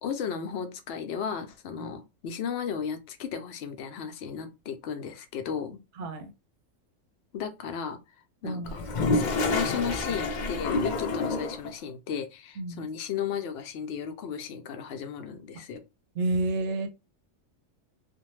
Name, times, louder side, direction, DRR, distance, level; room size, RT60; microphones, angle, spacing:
voice 1, 0.0-5.8 7.3-8.0 8.4-8.8 9.1-15.8, left 7 dB, 65° left, 0.8 m, -35 dB
voice 2, 6.0-6.3 8.4-8.7 12.6-12.9 16.1-16.9, right 2 dB, 70° right, 0.8 m, -30 dB
Toilet flush, 8.6-11.7, left 3 dB, 85° left, 0.4 m, -28 dB
2.6 x 2.1 x 3.0 m
omnidirectional pair, 1.3 m